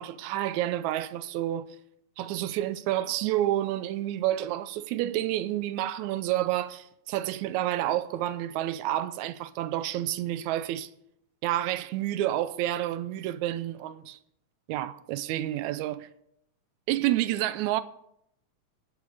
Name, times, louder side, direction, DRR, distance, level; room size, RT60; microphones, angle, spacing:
voice 1, 0.0-1.7 2.2-10.9 11.4-14.2 14.7-16.1 16.9-17.8, right 13 dB, 80° right, 1.9 m, -29 dB
18.5 x 6.4 x 4.8 m
omnidirectional pair, 3.4 m